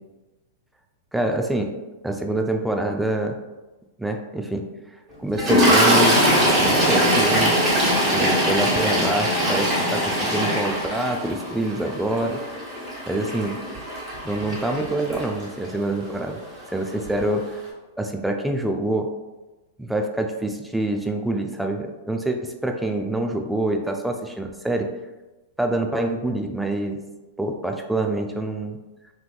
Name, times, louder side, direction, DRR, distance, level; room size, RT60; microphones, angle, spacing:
voice 1, 1.1-1.7 2.0-3.4 4.0-4.6 5.2-6.2 6.6-7.6 8.1-12.4 13.1-13.6 14.2-16.4 16.7-17.6 18.0-19.1 19.8-24.9 25.6-27.0 27.4-28.8, right 1 dB, 5° right, 3 dB, 0.4 m, -26 dB
Toilet flush, 5.4-15.7 16.6-16.8 17.0-17.2, equal, 30° right, 1.3 m, -21 dB
3.5 x 2.8 x 2.2 m, 1.1 s
hypercardioid pair, 105°, 0 cm